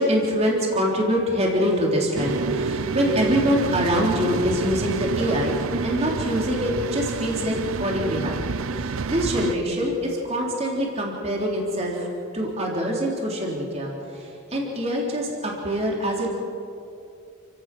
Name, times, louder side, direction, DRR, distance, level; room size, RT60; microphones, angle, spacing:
voice 1, 0.0-8.5 8.7-12.1 12.3-16.3, equal, 30° right, -2 dB, 3.6 m, -24 dB
sound 1, 2.2-9.6, right 4 dB, 75° right, 0.6 m, -28 dB
29.0 x 17.0 x 6.2 m, 2.5 s
head